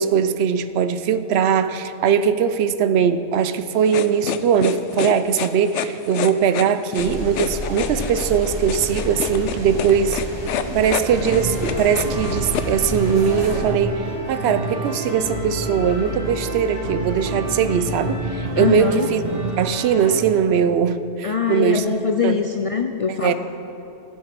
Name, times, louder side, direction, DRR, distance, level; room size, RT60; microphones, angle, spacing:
voice 1, 0.0-10.2 10.7-19.2 19.6-22.0 22.2-22.4 23.1-23.3, right 7 dB, 70° right, 13 dB, 0.8 m, -20 dB
sound 1, 3.9-12.7, left 10 dB, 90° left, 0.9 m, -28 dB
sound 2, 7.0-13.6, equal, 20° right, 2.4 m, -30 dB
sound 3, 11.1-20.2, right 1 dB, 55° right, 2.0 m, -28 dB
voice 2, 18.6-19.1 21.2-23.3, left 6 dB, 65° left, 6 dB, 0.3 m, -22 dB
15.0 x 8.0 x 6.0 m, 2.8 s
omnidirectional pair, 1.2 m